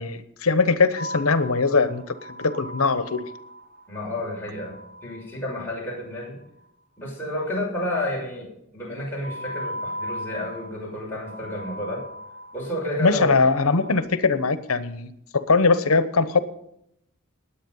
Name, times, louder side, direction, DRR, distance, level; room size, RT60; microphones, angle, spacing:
voice 1, 0.0-3.2 13.0-16.4, left 4 dB, 75° left, 12 dB, 1.0 m, -21 dB
sound 1, 1.0-6.3 9.2-14.0, equal, 45° right, 3.9 m, -38 dB
voice 2, 3.9-6.4 7.0-12.0 12.5-13.4, left 1 dB, 10° left, -4 dB, 6.5 m, -31 dB
20.5 x 8.5 x 5.6 m, 0.76 s
head